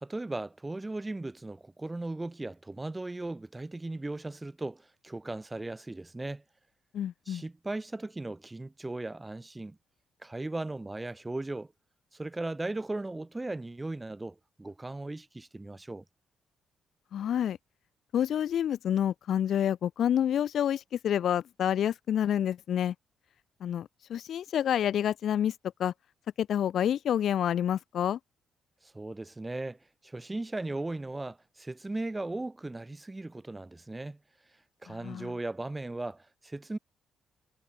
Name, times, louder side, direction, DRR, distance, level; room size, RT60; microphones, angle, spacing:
voice 1, 0.0-6.4 7.3-9.8 10.2-11.7 12.1-16.0 28.8-34.2 34.8-36.8, right 2 dB, 15° right, 1.1 m, -37 dB
voice 2, 6.9-7.4 17.1-17.6 18.1-22.9 23.6-25.5 25.8-25.9 26.4-28.2 34.9-35.3, left 10 dB, 65° left, 0.6 m, -28 dB
cardioid pair, 90°, 0 cm